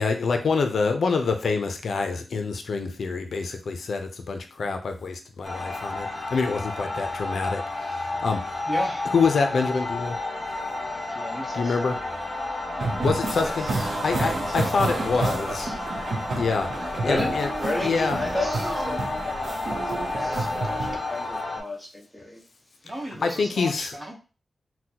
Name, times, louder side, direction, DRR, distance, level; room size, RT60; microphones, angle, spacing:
voice 1, 0.0-8.6 9.1-10.2 11.5-11.9 13.0-13.7 14.0-15.7 16.3-17.5 17.8-18.2 23.2-23.9, left 4 dB, 80° left, 5 dB, 0.4 m, -26 dB
sound 1, 5.4-21.6, left 2 dB, 40° left, 0.8 m, -31 dB
voice 2, 8.7-9.1 11.1-11.8 13.4-13.9 14.2-14.9 15.1-15.8 17.3-17.8 18.2-18.7 22.8-24.1, right 1 dB, 25° right, -1 dB, 0.9 m, -37 dB
sound 2, 12.8-21.0, right 2 dB, 70° right, 0.6 m, -30 dB
voice 3, 17.0-22.4 23.5-23.6, left 1 dB, 5° left, -3 dB, 1.1 m, -33 dB
3.8 x 2.1 x 2.8 m, 0.34 s
wide cardioid pair, 120°, 0 cm